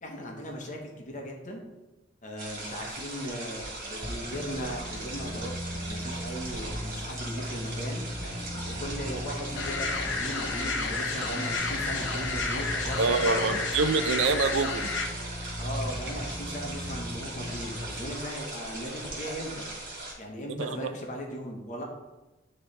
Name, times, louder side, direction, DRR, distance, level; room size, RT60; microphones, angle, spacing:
voice 1, 0.0-1.6 2.2-8.1 8.5-13.8 15.6-19.6 20.2-21.8, equal, 45° left, 1 dB, 1.1 m, -38 dB
sound 1, 2.4-20.1, right 2 dB, 50° right, 2.0 m, -39 dB
sound 2, 4.0-18.0, equal, 15° left, 0.4 m, -38 dB
sound 3, 9.6-15.1, left 4 dB, 75° left, 0.7 m, -31 dB
voice 2, 13.0-14.9 20.6-20.9, right 4 dB, 80° right, 10 dB, 0.5 m, -26 dB
9.7 x 3.2 x 3.3 m, 1.1 s
head